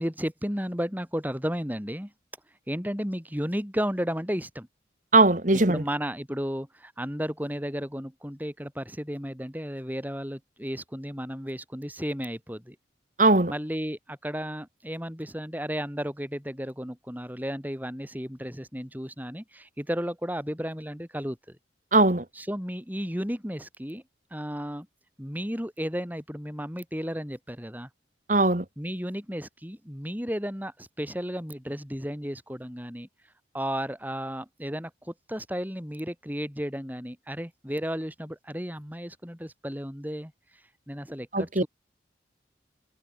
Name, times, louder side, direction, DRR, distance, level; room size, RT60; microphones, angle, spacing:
voice 1, 0.0-2.1 2.7-4.7 5.5-12.8 13.5-21.6 22.3-24.0 24.3-24.9 25.2-27.9 28.8-33.1 33.5-41.7, equal, 10° right, 7.8 m, -33 dB
voice 2, 5.1-5.8 13.2-13.5 21.9-22.2 28.3-28.6 41.3-41.6, right 2 dB, 45° right, 1.9 m, -20 dB
head